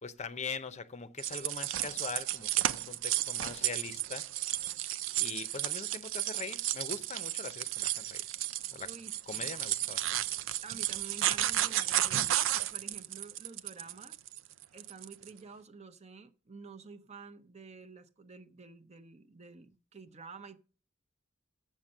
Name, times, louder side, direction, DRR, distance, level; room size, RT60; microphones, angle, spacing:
voice 1, 0.0-4.3 5.2-8.2 8.7-8.9 9.3-10.2, left 4 dB, 35° left, 0.6 m, -42 dB
sound 1, 1.2-15.3, right 13 dB, 85° right, 0.4 m, -33 dB
voice 2, 8.8-9.5 10.6-12.4 12.7-14.2 14.7-20.6, right 4 dB, 35° right, 0.7 m, -50 dB
7.6 x 7.4 x 6.4 m
head